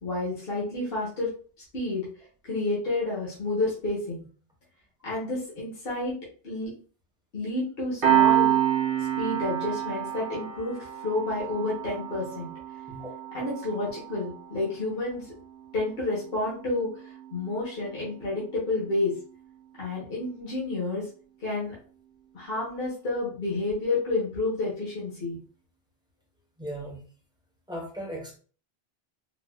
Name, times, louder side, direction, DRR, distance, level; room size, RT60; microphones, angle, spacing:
voice 1, 0.0-1.3 1.7-2.0 2.4-4.2 5.0-6.1 6.4-6.7 7.3-8.6 9.0-12.5 13.3-15.3 15.7-17.0 17.3-19.1 19.8-21.1 21.4-21.7 22.3-25.4, left 2 dB, 55° left, -6 dB, 1.2 m, -30 dB
Piano, 8.0-19.1, right 11 dB, 50° right, 1.1 m, -29 dB
voice 2, 26.6-27.0 27.7-28.4, right 1 dB, 5° right, -2 dB, 0.8 m, -37 dB
4.1 x 2.3 x 2.3 m, 0.41 s
omnidirectional pair, 1.2 m